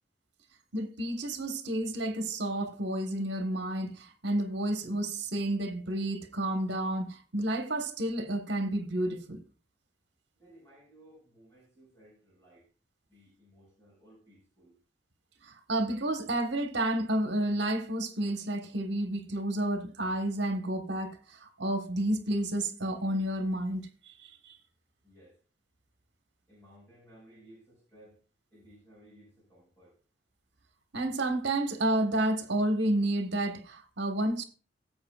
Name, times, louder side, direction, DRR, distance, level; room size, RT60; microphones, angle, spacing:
voice 1, 0.7-9.4 15.4-24.6 30.9-34.4, right 1 dB, 60° right, 1.4 m, -31 dB
voice 2, 10.4-12.7 13.1-14.7 25.0-25.4 26.5-28.2 28.5-30.0, right 1 dB, 15° left, 5.7 m, -58 dB
16.5 x 8.0 x 2.4 m
head